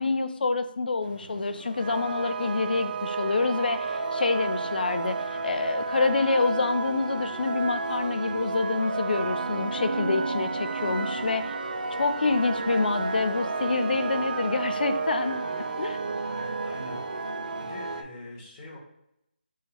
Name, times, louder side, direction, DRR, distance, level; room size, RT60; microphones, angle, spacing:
voice 1, 0.0-5.2 5.4-11.5 12.0-15.4 15.8-16.0, left 3 dB, 60° left, 9 dB, 0.5 m, -27 dB
sound 1, 1.0-18.0, right 3 dB, 55° right, 0.4 m, -32 dB
voice 2, 16.3-17.0 17.6-18.8, left 1 dB, 20° left, -6 dB, 1.2 m, -43 dB
3.6 x 3.3 x 3.0 m, 0.82 s
figure-of-eight pair, 165°, 6 cm